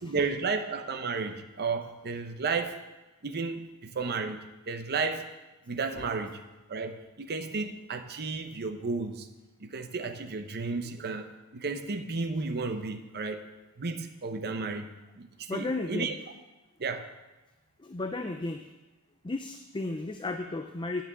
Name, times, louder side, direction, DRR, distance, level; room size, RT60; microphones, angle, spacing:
voice 1, 0.0-2.8 3.2-5.3 5.7-6.4 6.7-9.3 9.6-11.3 11.5-13.5 13.8-14.9 15.2-16.1 16.8-17.1, right 4 dB, 45° right, 7 dB, 0.8 m, -33 dB
voice 2, 15.5-16.2 17.8-18.6 19.2-21.0, left 2 dB, 20° left, 6 dB, 0.5 m, -34 dB
9.5 x 5.9 x 8.4 m, 1.1 s
head